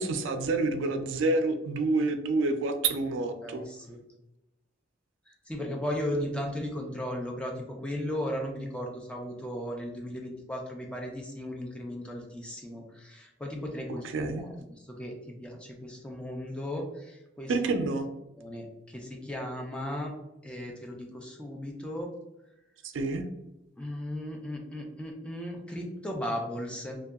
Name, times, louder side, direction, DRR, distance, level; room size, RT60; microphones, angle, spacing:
voice 1, 0.0-3.7 14.1-14.5 17.5-18.1 22.8-23.3, right 3 dB, 85° right, 7 dB, 0.3 m, -28 dB
voice 2, 3.4-4.0 5.5-17.6 18.3-20.1 20.4-22.1 23.8-27.0, left 1 dB, 5° left, 0 dB, 0.3 m, -36 dB
2.7 x 2.2 x 2.3 m, 0.91 s
head